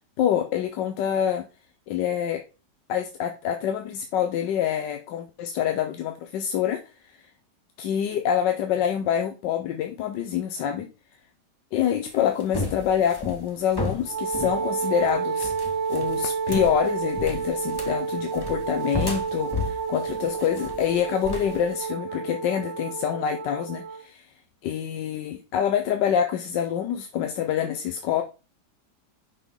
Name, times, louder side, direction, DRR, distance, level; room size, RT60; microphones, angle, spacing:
voice 1, 0.2-1.4 1.9-2.4 2.9-6.8 7.1-7.3 7.8-10.9 11.7-15.5 15.9-24.3 24.6-28.2, left 9 dB, 90° left, 6 dB, 1.4 m, -26 dB
sound 1, 12.1-21.7, left 2 dB, 15° left, 0.9 m, -34 dB
Wind instrument woodwind instrument, 14.1-24.0, right 5 dB, 80° right, 1.4 m, -30 dB
6.0 x 5.7 x 3.5 m, 0.31 s
omnidirectional pair, 1.9 m